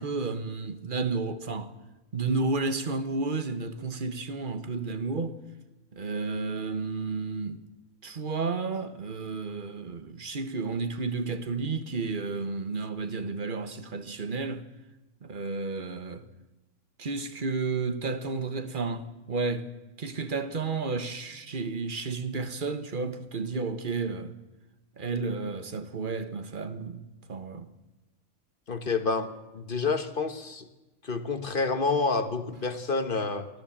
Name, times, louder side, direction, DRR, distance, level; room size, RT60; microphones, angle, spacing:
voice 1, 0.0-1.7 2.1-5.4 5.9-7.6 8.0-14.6 15.2-16.2 17.0-19.7 20.0-24.3 25.0-27.7, right 4 dB, 35° right, 1.2 m, -32 dB
voice 2, 28.7-29.3 29.5-30.7 31.0-33.5, left 4 dB, 40° left, 1.3 m, -28 dB
24.0 x 14.5 x 7.3 m
omnidirectional pair, 1.6 m